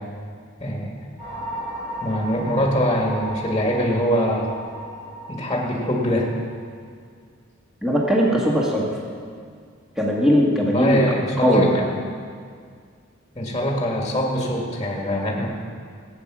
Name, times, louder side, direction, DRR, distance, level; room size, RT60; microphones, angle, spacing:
voice 1, 0.6-0.9 2.0-4.5 5.3-6.3 10.5-12.0 13.4-15.5, equal, 20° left, -1 dB, 1.9 m, -23 dB
sound 1, 1.2-6.6, right 1 dB, 35° right, 4.7 m, -35 dB
voice 2, 7.8-8.8 10.0-11.0 11.4-11.7, equal, 5° right, -4 dB, 1.8 m, -19 dB
17.0 x 8.9 x 6.1 m, 2.1 s
head